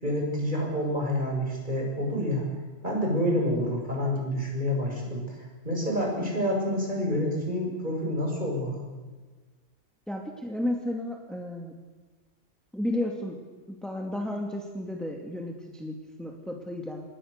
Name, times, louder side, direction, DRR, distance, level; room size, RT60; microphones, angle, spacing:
voice 1, 0.0-2.4 2.8-8.8, equal, 40° right, -1 dB, 6.9 m, -28 dB
voice 2, 10.1-11.7 12.7-13.4 13.7-17.0, left 1 dB, ahead, 1 dB, 2.4 m, -33 dB
27.0 x 21.0 x 6.8 m, 1.4 s
omnidirectional pair, 1.3 m